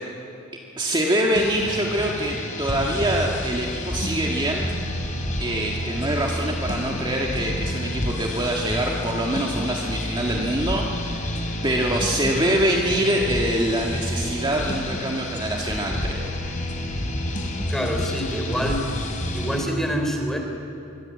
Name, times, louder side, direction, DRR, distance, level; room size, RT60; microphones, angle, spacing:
voice 1, 0.8-4.7 5.4-11.3 11.6-16.2, right 1 dB, 20° right, -1 dB, 1.8 m, -24 dB
sound 1, 1.3-19.6, left 1 dB, 40° left, 3.7 m, -29 dB
voice 2, 17.7-18.9 19.3-20.4, equal, ahead, 2 dB, 3.7 m, -26 dB
24.5 x 22.5 x 8.6 m, 2.8 s
head